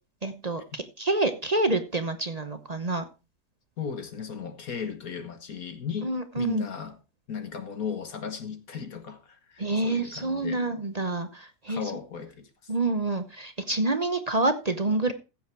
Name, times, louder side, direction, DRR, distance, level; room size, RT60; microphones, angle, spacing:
voice 1, 0.2-3.1 6.0-6.7 9.6-11.8 12.7-15.1, right 2 dB, 35° right, 0.6 m, -27 dB
voice 2, 3.8-7.0 7.3-10.6 11.7-12.7, left 6 dB, 50° left, 1.7 m, -36 dB
15.0 x 7.1 x 4.5 m
omnidirectional pair, 2.0 m